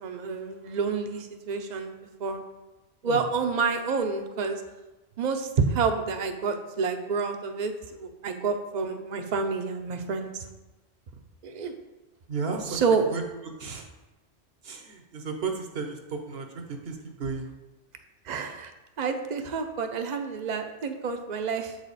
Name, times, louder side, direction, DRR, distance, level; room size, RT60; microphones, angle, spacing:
voice 1, 0.0-2.4 3.0-4.6 5.2-10.4 11.4-11.7 12.7-13.1 18.2-18.7 19.0-21.8, right 5 dB, 45° right, 6 dB, 0.7 m, -29 dB
voice 2, 12.3-13.9 14.6-17.5, right 4 dB, 60° right, 4 dB, 1.0 m, -34 dB
7.6 x 4.9 x 4.1 m, 1.1 s
omnidirectional pair, 1.2 m